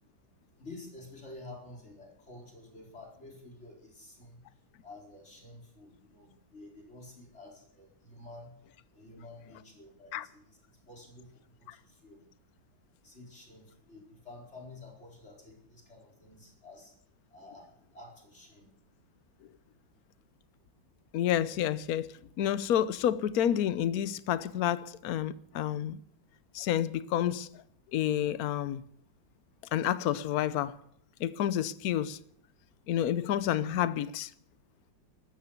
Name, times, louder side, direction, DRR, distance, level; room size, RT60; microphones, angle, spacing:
voice 1, 0.6-4.4 4.8-8.5 8.9-10.6 10.9-11.3 11.8-12.3 13.0-16.9 17.3-18.7, left 2 dB, 35° left, 4.6 m, -50 dB
voice 2, 21.1-22.1 22.4-26.0 26.5-27.5 27.9-28.8 29.7-30.8 31.2-32.2 32.9-34.3, left 11 dB, 60° left, 1.1 m, -29 dB
13.5 x 13.5 x 7.1 m
omnidirectional pair, 2.1 m